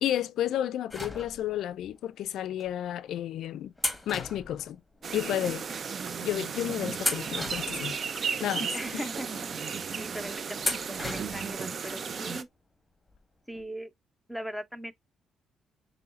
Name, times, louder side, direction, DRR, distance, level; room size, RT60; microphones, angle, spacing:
voice 1, 0.0-3.7 4.1-4.8 5.1-5.6 6.2-8.0 8.4-9.0, left 11 dB, 75° left, 0.3 m, -31 dB
sound 1, 0.9-1.7 2.6-2.7 3.8-5.2 5.5-5.6 6.3-6.6 7.0-8.3 8.8-8.9 10.6-11.6 11.9-12.0 13.1-13.2 13.5-13.6, left 1 dB, 10° left, 1.4 m, -35 dB
sound 2, 5.0-12.4, right 6 dB, 50° right, 0.5 m, -34 dB
voice 2, 8.7-9.5 10.0-10.6 11.0-12.5 13.5-13.9 14.3-14.9, equal, 5° right, 0.7 m, -39 dB
6.8 x 3.1 x 2.4 m
cardioid pair, 90°, 0 cm